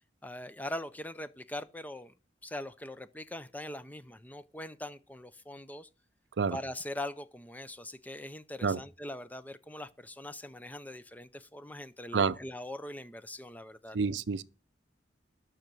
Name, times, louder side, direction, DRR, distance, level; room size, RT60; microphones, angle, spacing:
voice 1, 0.2-2.1 2.4-5.9 6.5-14.0, left 1 dB, 10° left, 0.5 m, -42 dB
voice 2, 13.9-14.4, right 5 dB, 90° right, 0.6 m, -28 dB
12.0 x 6.4 x 6.1 m
head